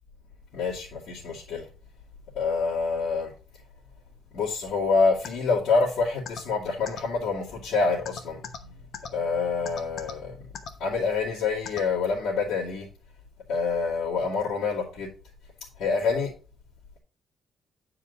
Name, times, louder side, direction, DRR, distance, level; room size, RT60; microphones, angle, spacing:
voice 1, 0.5-1.7 2.3-3.3 4.3-8.8 9.1-10.5 10.8-12.9 13.5-15.1 15.8-16.3, left 4 dB, 85° left, -8 dB, 2.5 m, -27 dB
sound 1, 5.2-5.3 6.2-6.4 6.8-7.0 8.0-8.6 8.9-9.1 9.6-10.1 10.5-10.7 11.6-11.8, left 7 dB, 55° left, 1.1 m, -36 dB
9.5 x 4.9 x 4.1 m, 0.36 s
cardioid pair, 140°, 0 cm